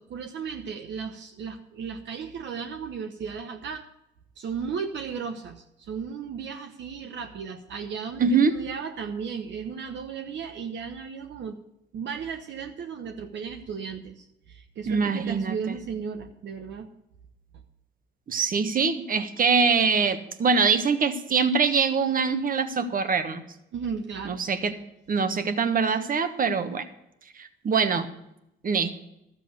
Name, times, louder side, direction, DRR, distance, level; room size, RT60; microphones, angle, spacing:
voice 1, 0.0-3.9 4.4-11.6 11.9-16.9 23.7-24.4, right 6 dB, 65° right, 5 dB, 1.0 m, -35 dB
voice 2, 8.2-8.5 14.9-15.8 18.3-23.4 24.3-24.7 25.1-26.8 27.4-28.1 28.6-28.9, right 5 dB, 45° right, 10 dB, 1.3 m, -23 dB
12.5 x 7.5 x 6.6 m, 0.84 s
cardioid pair, 90°, 20 cm